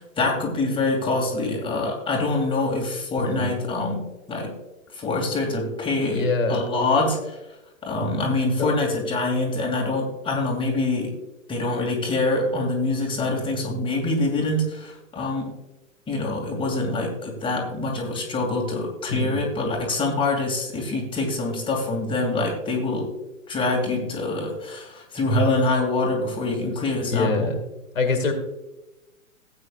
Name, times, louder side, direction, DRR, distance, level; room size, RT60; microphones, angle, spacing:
voice 1, 0.0-4.6 4.9-7.4 7.8-11.2 11.5-15.5 16.1-23.1 23.5-27.5, left 2 dB, 15° left, 0 dB, 2.4 m, -25 dB
voice 2, 3.2-3.6 6.0-6.6 8.6-8.8 19.1-19.5 27.0-27.6 27.9-28.3, left 3 dB, 70° left, 4 dB, 2.1 m, -25 dB
16.5 x 8.5 x 2.4 m, 0.98 s
figure-of-eight pair, 110°, 40 cm